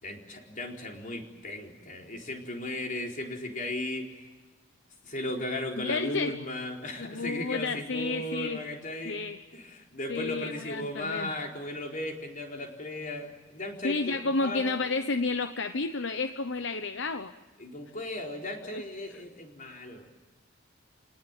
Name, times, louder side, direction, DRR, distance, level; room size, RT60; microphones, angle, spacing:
voice 1, 0.0-4.3 5.0-9.2 9.5-14.8 17.6-20.2, left 1 dB, 40° left, 2 dB, 4.3 m, -36 dB
voice 2, 5.8-6.4 7.0-8.6 9.0-9.4 10.1-11.3 13.8-17.3, left 3 dB, 65° left, 10 dB, 0.9 m, -31 dB
28.0 x 19.5 x 9.0 m, 1.2 s
head